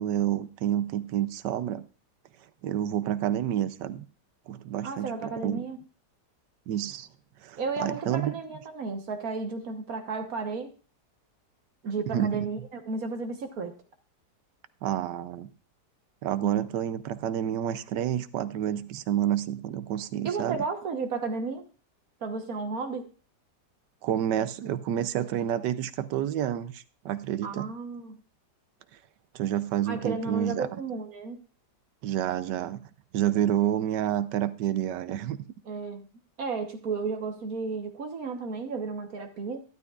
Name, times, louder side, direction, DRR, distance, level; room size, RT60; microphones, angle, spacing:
voice 1, 0.0-1.8 2.6-4.1 4.5-5.6 6.7-7.1 7.4-8.4 12.1-12.5 14.8-15.5 16.2-20.6 24.0-27.7 29.3-30.8 32.0-32.8 33.1-35.4, right 11 dB, 80° right, 1.2 m, -29 dB
voice 2, 4.8-5.8 7.6-10.7 11.8-13.7 16.4-16.7 20.2-21.6 22.2-23.1 27.4-28.2 29.9-31.4 35.7-36.1 36.4-39.6, right 4 dB, 55° right, 1.5 m, -33 dB
12.0 x 12.0 x 2.4 m
omnidirectional pair, 1.9 m